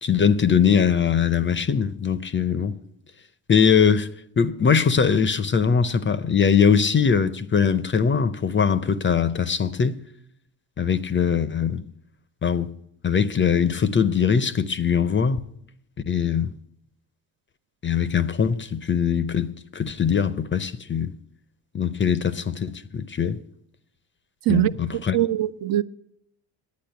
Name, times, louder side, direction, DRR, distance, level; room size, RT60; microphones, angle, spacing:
voice 1, 0.0-2.8 3.5-4.1 4.4-10.0 10.8-11.8 12.4-12.7 13.0-15.4 16.1-16.5 17.8-21.1 21.7-23.4 24.5-25.2, left 7 dB, 25° left, 0.6 m, -21 dB
voice 2, 24.5-25.8, right 13 dB, 45° right, 0.5 m, -23 dB
10.5 x 8.4 x 9.2 m
supercardioid pair, 80°, 48 cm